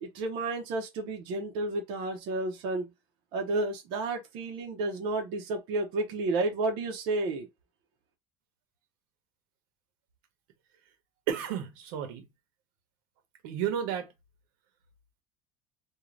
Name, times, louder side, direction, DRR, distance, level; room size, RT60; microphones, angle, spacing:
voice 1, 0.0-2.9 3.3-7.5, right 2 dB, 55° right, 0.5 m, -31 dB
voice 2, 11.3-12.3 13.4-14.1, right 9 dB, 85° right, 0.8 m, -32 dB
2.5 x 2.1 x 3.1 m
cardioid pair, 180°, 10 cm